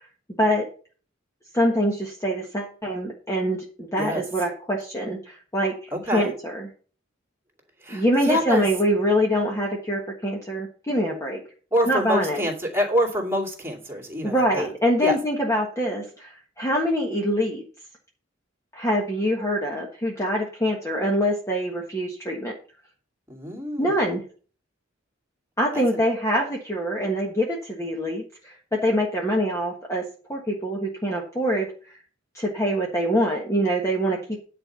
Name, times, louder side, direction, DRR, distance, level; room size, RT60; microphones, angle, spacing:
voice 1, 1.5-5.7 6.1-6.7 7.9-11.4 11.9-12.4 14.2-17.6 18.7-22.5 23.8-24.2 25.6-30.0 30.3-31.9 32.3-34.4, equal, 15° left, -1 dB, 1.4 m, -24 dB
voice 2, 5.9-6.3 7.8-8.6 11.7-14.7 15.0-15.2 23.3-24.0 25.7-25.8, equal, 15° right, 1 dB, 2.6 m, -26 dB
10.0 x 4.5 x 6.9 m, 0.40 s
head